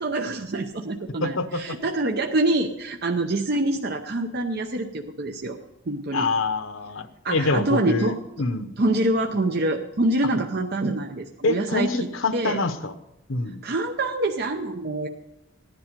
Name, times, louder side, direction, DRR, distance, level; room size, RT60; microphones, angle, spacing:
voice 1, 0.0-5.6 5.9-6.3 7.2-8.2 8.8-11.9 12.3-12.6 13.6-15.1, right 2 dB, 55° right, 3 dB, 0.7 m, -25 dB
voice 2, 1.2-1.6 6.1-8.7 11.4-12.9 13.3-13.6, left 3 dB, 85° left, 10 dB, 0.9 m, -26 dB
15.5 x 10.5 x 5.2 m, 0.94 s
head